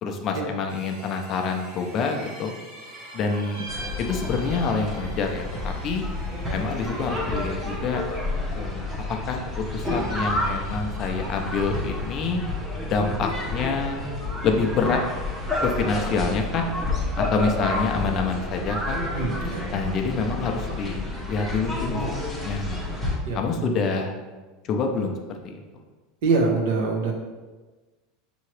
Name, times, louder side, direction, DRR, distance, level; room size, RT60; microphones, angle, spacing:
voice 1, 0.0-2.5 3.1-3.7 4.0-6.0 6.5-8.0 8.5-8.9 9.3-9.4 9.7-12.4 12.9-14.0 14.4-15.0 15.6-16.7 17.2-19.0 19.7-22.2 22.4-22.8 23.3-24.1 24.6-25.1 25.4-25.6, left 4 dB, 30° left, 3 dB, 0.4 m, -26 dB
sound 1, 0.7-12.7, right 2 dB, 50° right, 0.9 m, -45 dB
sound 2, 3.7-23.2, left 2 dB, 5° right, 0.8 m, -30 dB
voice 2, 19.1-19.6 23.3-23.8 26.2-27.1, right 3 dB, 75° right, 1 dB, 1.0 m, -24 dB
6.1 x 2.8 x 3.1 m, 1.3 s
supercardioid pair, 170°, 0 cm